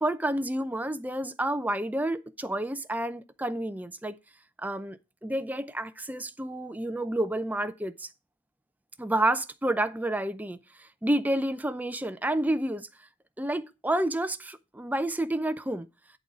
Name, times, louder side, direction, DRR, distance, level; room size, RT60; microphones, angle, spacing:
voice 1, 0.0-4.2 4.6-8.1 9.0-12.9 13.4-15.9, right 1 dB, 10° right, 0.5 m, -29 dB
10.5 x 4.0 x 6.2 m
head